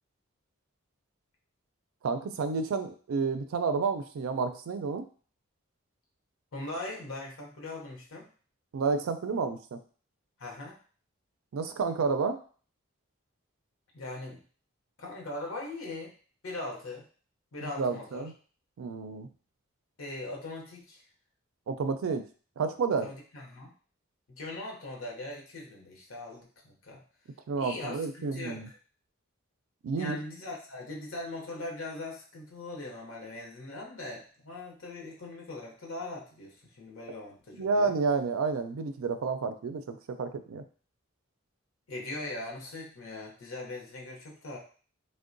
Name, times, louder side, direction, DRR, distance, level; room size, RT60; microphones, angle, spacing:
voice 1, 2.0-5.1 8.7-9.8 11.5-12.4 17.6-18.3 18.8-19.3 21.7-22.3 22.6-23.1 27.5-28.7 29.8-30.2 37.6-40.6, right 4 dB, 80° right, 8 dB, 0.4 m, -30 dB
voice 2, 6.5-8.3 10.4-10.8 13.9-14.4 15.0-16.1 16.4-17.1 17.5-18.3 20.0-21.0 22.9-23.7 24.3-27.0 27.6-28.6 29.9-37.9 41.9-44.6, left 2 dB, 80° left, -1 dB, 0.7 m, -40 dB
3.6 x 2.1 x 2.5 m, 0.41 s
head